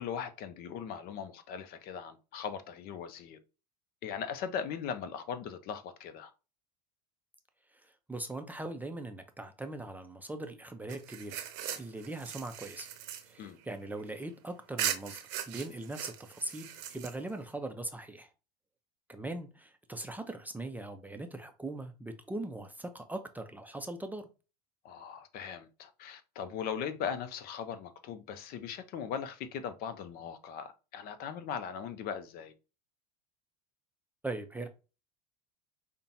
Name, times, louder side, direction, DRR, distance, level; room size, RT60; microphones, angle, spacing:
voice 1, 0.0-3.4 4.0-6.3 13.4-13.6 24.8-32.5, left 7 dB, 50° left, 0.6 m, -39 dB
voice 2, 8.1-11.4 11.8-12.9 13.2-18.3 19.1-24.3 34.2-34.7, right 2 dB, 10° right, 0.5 m, -40 dB
sound 1, 10.9-14.3 14.8-17.5, right 10 dB, 60° right, 0.7 m, -39 dB
5.1 x 2.2 x 2.8 m
hypercardioid pair, 90°, 21 cm